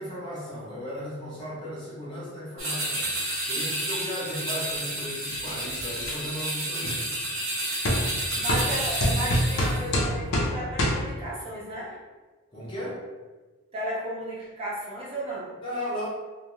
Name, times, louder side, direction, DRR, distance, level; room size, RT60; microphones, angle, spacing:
voice 1, 0.0-7.1 12.5-13.0 15.6-16.1, equal, 20° left, -7 dB, 0.6 m, -36 dB
sound 1, 2.6-9.9, right 1 dB, 60° right, 0.7 m, -30 dB
sound 2, 5.3-6.2 6.8-7.0 7.9-8.0 8.5-8.7 9.0-10.5 10.8-11.0, equal, 70° left, 0.5 m, -25 dB
voice 2, 8.3-12.0 13.7-15.5, right 1 dB, 25° right, -7 dB, 0.5 m, -34 dB
2.2 x 2.2 x 3.0 m, 1.3 s
head